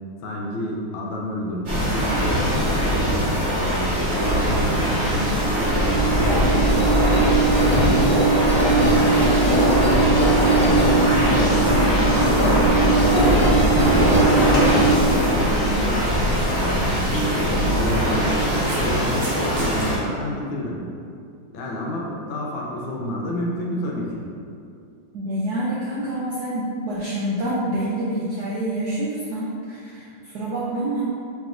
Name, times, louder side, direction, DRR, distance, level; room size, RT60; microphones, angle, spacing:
voice 1, 0.2-3.2 3.6-7.9 8.4-14.1 14.8-16.1 16.5-20.8 21.5-24.3, equal, 75° left, -2 dB, 1.3 m, -29 dB
sound 1, 1.7-20.0, equal, 45° right, 1.1 m, -22 dB
Engine, 5.5-17.2, right 2 dB, 35° left, 0.9 m, -20 dB
sound 2, 18.6-19.9, right 2 dB, 65° right, 1.4 m, -37 dB
voice 2, 25.1-31.0, right 1 dB, 80° right, -7 dB, 0.9 m, -27 dB
3.3 x 3.1 x 3.7 m, 2.4 s
omnidirectional pair, 2.3 m